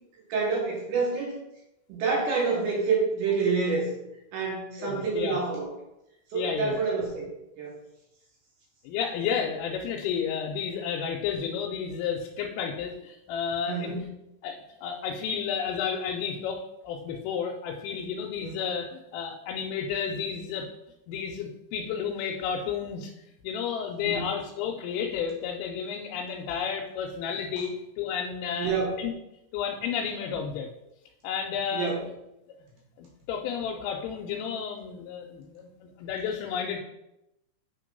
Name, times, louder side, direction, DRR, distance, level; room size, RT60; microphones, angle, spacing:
voice 1, 0.3-1.4 1.9-3.9 4.3-5.7 6.3-7.3 7.6-7.7 13.7-14.0 18.4-18.6 24.0-24.3 27.6-27.7 28.6-29.0 31.7-32.0, right 4 dB, 70° right, -3 dB, 3.2 m, -27 dB
voice 2, 4.8-5.4 6.3-6.8 8.8-13.9 14.4-20.7 21.1-23.1 23.4-28.7 29.0-29.1 29.5-30.7 31.2-31.9 33.0-35.7 36.0-36.8, left 7 dB, 80° left, 0 dB, 3.2 m, -32 dB
8.4 x 3.5 x 5.2 m, 0.88 s
omnidirectional pair, 6.0 m